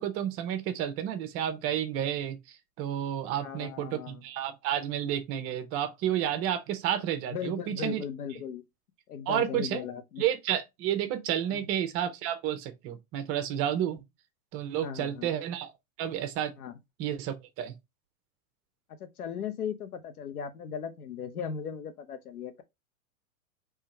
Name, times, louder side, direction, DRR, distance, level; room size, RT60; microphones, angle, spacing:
voice 1, 0.0-8.0 8.3-8.4 9.3-9.8 10.2-14.0 14.5-15.7 16.0-16.5 17.0-17.7, right 10 dB, 30° right, 0.8 m, -31 dB
voice 2, 3.4-4.2 7.3-8.6 9.1-10.2 11.5-11.6 14.8-15.3 16.6-16.7 19.0-22.6, left 7 dB, 85° left, 1.0 m, -37 dB
3.6 x 3.2 x 4.3 m
hypercardioid pair, 130°, 43 cm